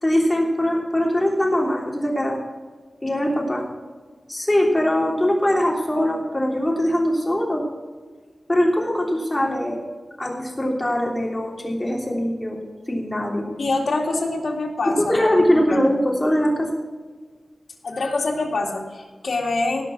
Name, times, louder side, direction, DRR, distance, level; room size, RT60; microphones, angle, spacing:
voice 1, 0.0-2.4 3.0-3.6 4.3-7.6 8.5-9.8 10.2-12.6 12.9-13.5 15.0-16.7, equal, 15° left, -1 dB, 3.3 m, -21 dB
voice 2, 13.6-15.1 15.7-15.8 17.8-19.8, left 3 dB, 75° left, 0 dB, 2.3 m, -25 dB
17.5 x 6.0 x 6.0 m, 1.4 s
wide cardioid pair, 85°, 0 cm